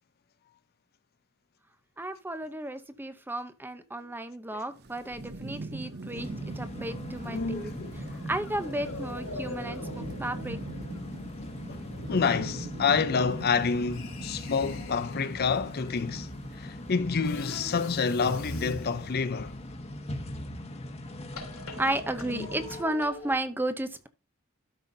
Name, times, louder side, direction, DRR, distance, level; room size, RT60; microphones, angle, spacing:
voice 1, 2.0-6.3 6.5-7.7 8.3-10.6 21.8-24.1, right 1 dB, 10° right, 0.7 m, -33 dB
Thunderstorm / Rain, 4.7-17.0, right 2 dB, 50° right, 0.7 m, -43 dB
sound 1, 5.1-5.4 5.8-15.4 17.2-19.9 21.4-23.4, left 2 dB, 90° left, 3.6 m, -44 dB
sound 2, 6.1-22.8, left 1 dB, 30° left, 1.1 m, -41 dB
voice 2, 7.3-8.0 11.7-11.8 12.1-16.3 16.6-19.5 22.3-22.5, left 5 dB, 45° left, 0.5 m, -28 dB
12.5 x 5.6 x 2.6 m
head